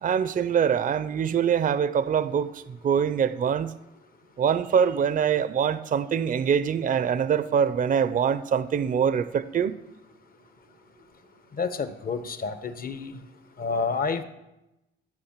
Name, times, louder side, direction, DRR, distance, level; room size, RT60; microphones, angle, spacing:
voice 1, 0.0-3.7 4.4-9.8, right 7 dB, 45° right, 15 dB, 0.6 m, -24 dB
voice 2, 11.5-13.2 13.6-14.2, left 5 dB, 50° left, 11 dB, 1.1 m, -29 dB
13.0 x 6.5 x 7.3 m, 0.95 s
cardioid pair, 90°, 20 cm